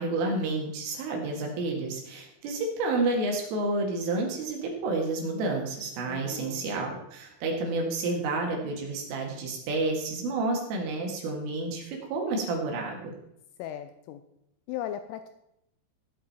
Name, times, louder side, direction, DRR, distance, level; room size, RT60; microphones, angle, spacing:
voice 1, 0.0-13.1, right 2 dB, 80° right, 1 dB, 4.5 m, -30 dB
voice 2, 6.1-6.7 13.6-14.2 14.7-15.3, left 11 dB, 85° left, 9 dB, 3.2 m, -37 dB
16.0 x 8.8 x 4.3 m, 0.81 s
omnidirectional pair, 5.7 m